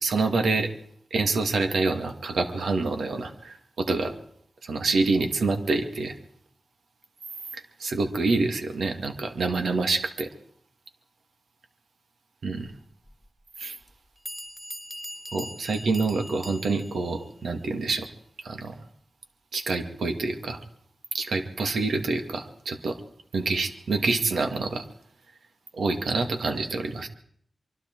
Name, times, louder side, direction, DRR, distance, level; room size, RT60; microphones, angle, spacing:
voice 1, 0.0-0.7 1.1-4.1 4.6-6.1 7.5-10.3 12.4-12.7 13.6-13.8 15.3-18.1 18.4-18.7 19.5-20.6 21.1-23.0 23.3-24.8 25.7-27.1, right 3 dB, 90° right, 5 dB, 2.2 m, -27 dB
Bell, 13.1-13.2 13.9-14.0 14.3-17.1, equal, ahead, 2.4 m, -40 dB
24.5 x 23.5 x 4.6 m, 0.65 s
cardioid pair, 40°, 0 cm